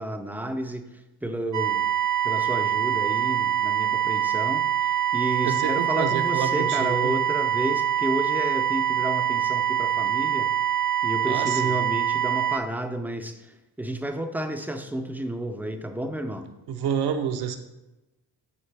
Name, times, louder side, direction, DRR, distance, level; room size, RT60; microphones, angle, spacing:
voice 1, 0.0-1.8 2.2-10.5 11.0-16.5, right 1 dB, 5° right, 6 dB, 0.3 m, -31 dB
sound 1, 1.5-12.6, right 10 dB, 50° right, 0.6 m, -24 dB
voice 2, 5.4-7.1 11.2-11.8 16.7-17.6, right 7 dB, 80° right, 6 dB, 0.7 m, -29 dB
9.5 x 4.8 x 3.3 m, 1.0 s
wide cardioid pair, 180°, 39 cm